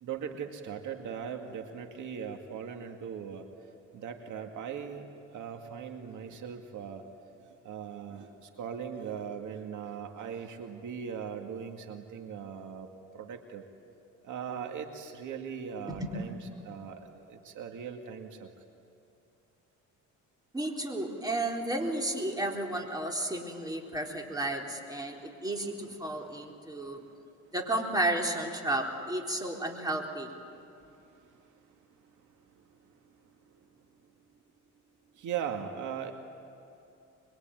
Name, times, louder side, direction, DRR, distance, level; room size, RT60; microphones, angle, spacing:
voice 1, 0.0-3.5 3.9-7.0 7.5-12.9 13.1-13.7 14.2-16.4 16.6-18.5 25.8-27.3 30.8-33.8 35.1-36.1, right 7 dB, 75° right, 4 dB, 2.3 m, -40 dB
voice 2, 20.5-27.0 27.5-30.3, right 1 dB, 10° right, 1 dB, 4.1 m, -32 dB
24.5 x 22.5 x 9.2 m, 2.8 s
cardioid pair, 90°, 30 cm